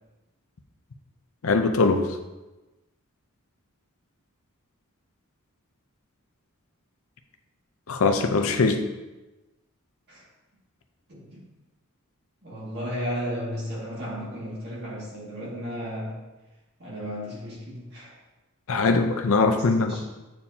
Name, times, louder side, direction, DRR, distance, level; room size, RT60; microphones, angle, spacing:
voice 1, 1.4-2.2 7.9-8.9 18.7-20.0, left 3 dB, 65° left, 7 dB, 0.6 m, -22 dB
voice 2, 11.1-11.5 12.4-16.2 16.8-18.2 19.5-20.0, equal, 50° right, -6 dB, 2.1 m, -34 dB
8.7 x 4.4 x 2.8 m, 1.1 s
head